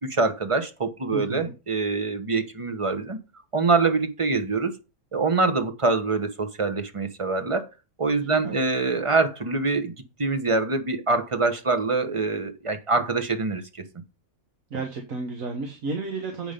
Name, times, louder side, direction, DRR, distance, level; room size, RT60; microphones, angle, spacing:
voice 1, 0.0-3.2 3.5-4.7 5.1-7.7 8.0-9.9 10.2-13.6, right 3 dB, 25° right, 0.9 m, -24 dB
voice 2, 1.1-1.5 8.4-8.6 14.7-16.5, right 3 dB, 65° right, 1.7 m, -32 dB
8.3 x 5.6 x 5.1 m
omnidirectional pair, 1.5 m